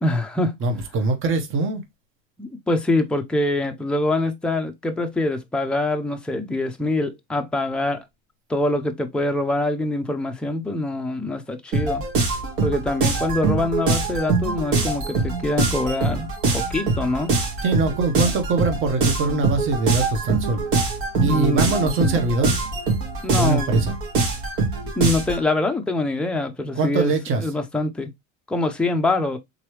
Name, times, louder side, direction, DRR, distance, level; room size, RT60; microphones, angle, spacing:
voice 1, 0.0-0.6 2.4-8.0 8.5-12.0 12.6-16.3 16.5-17.3 18.2-18.3 21.3-22.2 23.2-23.8 25.0-27.1 27.4-28.1 28.5-29.4, left 2 dB, 5° left, 0.4 m, -24 dB
voice 2, 0.6-1.8 13.5-13.6 17.6-20.6 21.2-22.5 23.3-23.9 26.8-27.4, right 3 dB, 35° right, 0.9 m, -22 dB
sound 1, 11.7-25.4, right 3 dB, 75° right, 1.9 m, -24 dB
3.8 x 3.1 x 3.0 m
cardioid pair, 135°, 37 cm